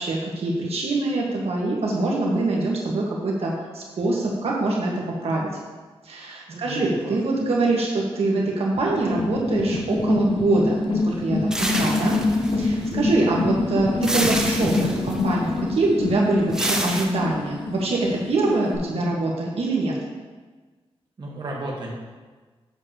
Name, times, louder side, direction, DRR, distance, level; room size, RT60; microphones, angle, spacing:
voice 1, 0.0-5.5 6.0-12.2 12.5-18.0 18.3-19.9, right 2 dB, 75° right, -3 dB, 1.4 m, -24 dB
voice 2, 6.5-7.2 11.7-11.9 21.2-21.9, right 1 dB, 45° right, -3 dB, 1.3 m, -34 dB
sound 1, 8.7-18.8, left 3 dB, 50° left, 0.8 m, -26 dB
sound 2, 11.5-12.9 14.0-15.2 16.5-17.1, right 1 dB, 5° right, 0.6 m, -27 dB
7.9 x 6.9 x 2.9 m, 1.3 s
wide cardioid pair, 125°, 11 cm